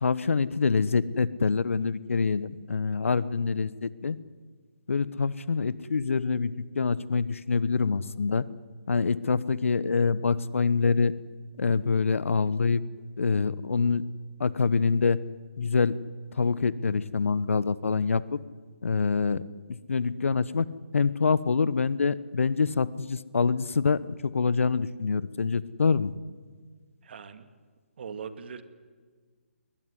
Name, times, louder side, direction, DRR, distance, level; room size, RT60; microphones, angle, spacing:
voice 1, 0.0-4.2 4.9-8.4 8.9-11.1 11.6-12.8 13.2-14.0 14.4-15.2 15.6-16.0 16.3-18.4 18.8-19.4 19.9-20.7 20.9-26.1, left 5 dB, 75° left, 18 dB, 1.0 m, -25 dB
voice 2, 27.0-27.5 28.0-28.6, right 6 dB, 50° right, 10 dB, 2.1 m, -40 dB
21.0 x 20.5 x 9.9 m, 1.5 s
figure-of-eight pair, 150°, 7 cm